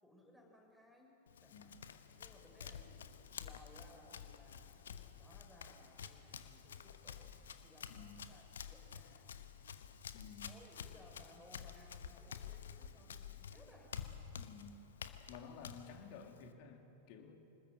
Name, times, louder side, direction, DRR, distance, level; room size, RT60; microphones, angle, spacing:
voice 1, 0.0-1.7 2.2-9.4 10.5-13.9, left 1 dB, ahead, -1 dB, 6.0 m, -63 dB
Run, 1.3-16.5, left 7 dB, 65° left, 1.1 m, -51 dB
voice 2, 7.9-8.2 10.1-10.5 14.4-14.8 15.3-17.5, left 5 dB, 45° left, 4 dB, 2.8 m, -53 dB
26.0 x 20.0 x 7.8 m, 2.8 s
figure-of-eight pair, 90°, 0 cm